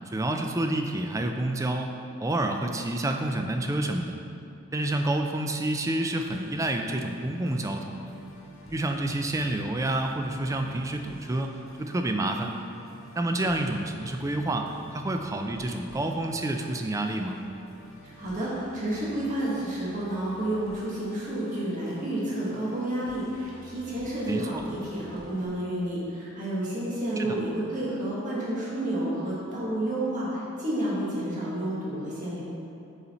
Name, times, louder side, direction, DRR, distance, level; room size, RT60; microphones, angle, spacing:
voice 1, 0.1-1.9 2.2-4.2 4.7-8.1 8.7-11.5 11.8-12.6 13.2-17.4 24.3-24.6 27.2-27.3, right 1 dB, 15° right, 4 dB, 0.3 m, -28 dB
Musical instrument, 6.3-25.5, left 1 dB, 70° left, 0.8 m, -51 dB
voice 2, 18.0-32.4, right 1 dB, 40° right, -8 dB, 1.4 m, -30 dB
6.9 x 4.1 x 4.1 m, 2.7 s
head